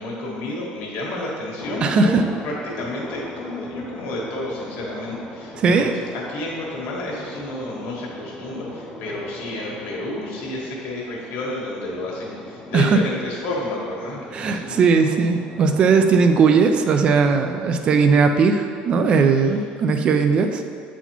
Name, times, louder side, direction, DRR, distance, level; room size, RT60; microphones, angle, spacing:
voice 1, 0.0-2.1 2.4-14.8, left 1 dB, 65° left, -3 dB, 1.4 m, -30 dB
sound 1, 1.6-19.7, left 1 dB, 15° left, 0.6 m, -40 dB
voice 2, 1.8-2.2 5.6-5.9 12.7-13.0 14.3-20.6, right 5 dB, 30° right, 7 dB, 0.4 m, -18 dB
8.0 x 4.1 x 3.0 m, 2.1 s
cardioid pair, 165°, 3 cm